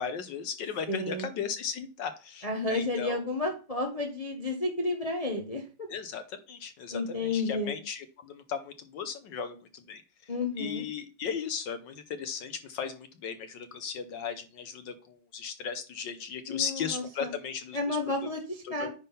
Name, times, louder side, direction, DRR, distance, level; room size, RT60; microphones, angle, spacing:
voice 1, 0.0-3.2 5.9-10.0 10.6-18.0 18.6-18.9, left 7 dB, 70° left, 9 dB, 1.3 m, -36 dB
voice 2, 0.9-1.3 2.4-5.7 6.9-7.8 10.3-10.8 16.5-17.3 17.7-18.9, left 2 dB, 25° left, 2 dB, 0.8 m, -31 dB
9.7 x 3.7 x 5.5 m, 0.36 s
omnidirectional pair, 2.2 m